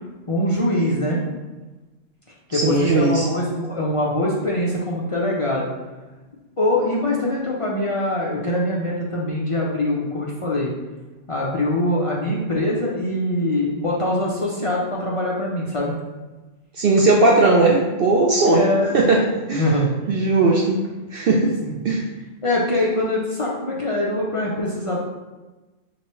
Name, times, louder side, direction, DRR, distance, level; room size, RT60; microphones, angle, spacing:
voice 1, 0.3-1.2 2.5-5.7 6.6-10.7 11.3-15.9 18.4-19.0 19.5-19.9 21.6-21.8 22.4-25.0, left 1 dB, 50° left, -4 dB, 0.4 m, -23 dB
voice 2, 2.5-3.3 16.8-18.7 18.9-19.2 19.5-19.6 20.1-20.8 21.1-21.5 21.8-22.0, right 3 dB, 60° right, -2 dB, 0.6 m, -17 dB
4.5 x 3.0 x 3.0 m, 1.2 s
omnidirectional pair, 1.3 m